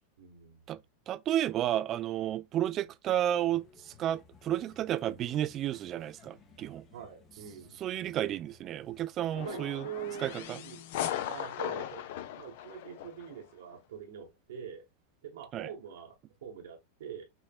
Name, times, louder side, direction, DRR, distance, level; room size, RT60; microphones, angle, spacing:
voice 1, 0.2-0.7 1.9-2.0 6.9-7.8 8.3-8.4 9.4-10.8 11.3-12.1 12.4-14.9 15.2-17.2, right 8 dB, 60° right, 0.9 m, -44 dB
voice 2, 1.1-6.8 7.8-9.9 10.2-10.6 15.5-15.7, right 12 dB, 30° right, 0.3 m, -32 dB
sound 1, 3.4-9.4, left 5 dB, 30° left, 0.8 m, -59 dB
sound 2, 9.3-13.4, left 11 dB, 50° left, 0.5 m, -38 dB
5.9 x 3.1 x 2.2 m
figure-of-eight pair, 90°, 0 cm